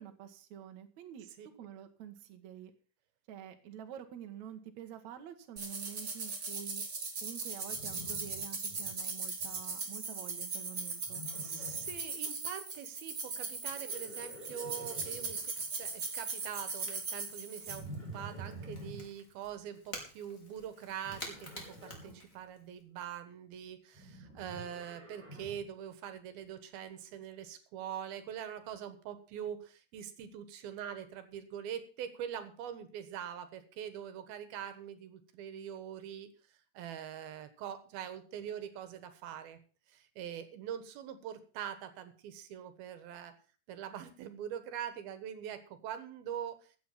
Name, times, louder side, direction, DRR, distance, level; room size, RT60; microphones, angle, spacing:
voice 1, 0.0-1.3 1.6-2.7 3.3-6.8 7.2-11.3, right 10 dB, 60° right, 5 dB, 2.4 m, -48 dB
sound 1, 5.6-17.8, right 4 dB, 30° right, 3.2 m, -39 dB
Livestock farm animals working animals, 7.7-8.9 9.2-9.7 11.0-12.0 13.6-15.4 17.7-19.1 21.0-22.2 23.9-25.7, right 1 dB, 10° right, 5.7 m, -48 dB
voice 2, 11.4-39.6 39.9-43.4 43.7-46.7, right 9 dB, 80° right, 10 dB, 3.2 m, -43 dB
Crackle / Crack, 13.3-22.8, left 1 dB, 25° left, 3.1 m, -52 dB
15.0 x 8.6 x 5.7 m, 0.37 s
omnidirectional pair, 4.3 m